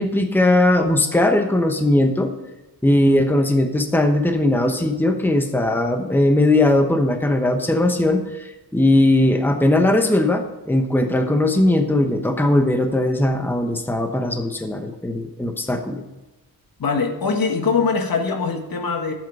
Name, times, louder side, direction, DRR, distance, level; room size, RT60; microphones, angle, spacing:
voice 1, 0.0-2.3 2.8-16.0, left 1 dB, 5° left, 5 dB, 1.0 m, -19 dB
voice 2, 16.8-19.1, left 5 dB, 65° left, 4 dB, 1.5 m, -22 dB
11.5 x 7.9 x 5.4 m, 1.0 s
wide cardioid pair, 110°, 37 cm